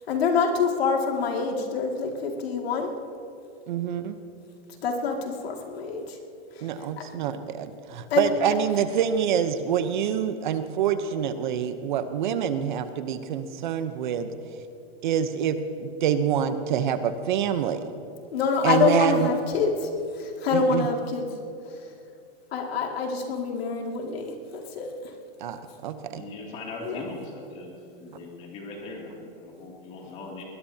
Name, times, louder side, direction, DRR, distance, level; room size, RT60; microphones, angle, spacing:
voice 1, 0.1-2.9 4.8-6.2 6.6-6.7 7.0-7.1 8.1-8.3 18.3-19.9 20.1-21.3 22.5-25.1 26.9-27.0, left 5 dB, 80° left, 2 dB, 2.4 m, -26 dB
voice 2, 3.7-4.2 6.6-14.3 15.0-17.8 18.6-19.3 20.5-20.9 25.4-26.2, right 8 dB, 50° right, 10 dB, 0.9 m, -26 dB
voice 3, 26.1-30.4, left 2 dB, 20° left, -1 dB, 2.7 m, -40 dB
20.5 x 20.5 x 2.9 m, 2.6 s
supercardioid pair, 175°, 30 cm